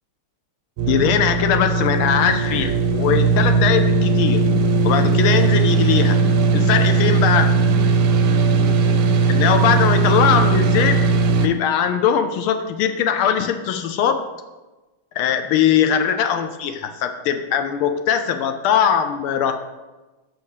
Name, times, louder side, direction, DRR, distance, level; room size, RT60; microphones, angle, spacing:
sound 1, 0.8-11.5, right 3 dB, 85° right, 1.6 m, -18 dB
voice 1, 0.9-4.4 4.8-6.2 6.5-7.6 9.3-11.0 11.4-14.3 15.2-19.5, left 8 dB, 80° left, 7 dB, 1.4 m, -20 dB
6.3 x 4.2 x 6.5 m, 1.1 s
omnidirectional pair, 2.4 m